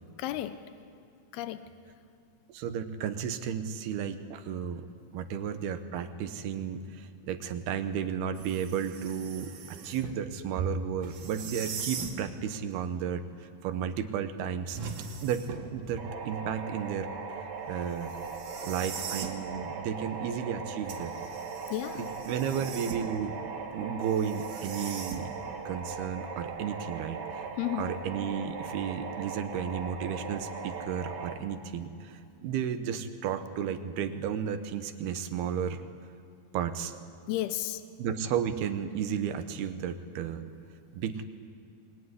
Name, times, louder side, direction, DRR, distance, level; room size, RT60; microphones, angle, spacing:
voice 1, 0.2-0.6 1.3-1.7 21.7-22.1 27.6-27.9 37.3-37.8, left 14 dB, 85° left, 11 dB, 2.9 m, -33 dB
voice 2, 2.5-4.9 5.1-14.8 15.2-15.4 15.7-17.1 17.7-18.2 18.6-21.2 22.0-23.3 23.7-25.3 25.7-27.5 27.7-35.8 36.5-36.9 38.0-40.4 40.9-41.2, right 8 dB, 80° right, 9 dB, 3.2 m, -33 dB
sound 1, 8.4-10.2 11.0-12.2 14.7-15.8 18.0-19.4 20.9-23.2 24.0-25.5, right 5 dB, 60° right, 3.6 m, -41 dB
sound 2, 16.0-31.3, right 5 dB, 45° right, 2.6 m, -39 dB
27.5 x 21.5 x 9.7 m, 2.3 s
omnidirectional pair, 4.5 m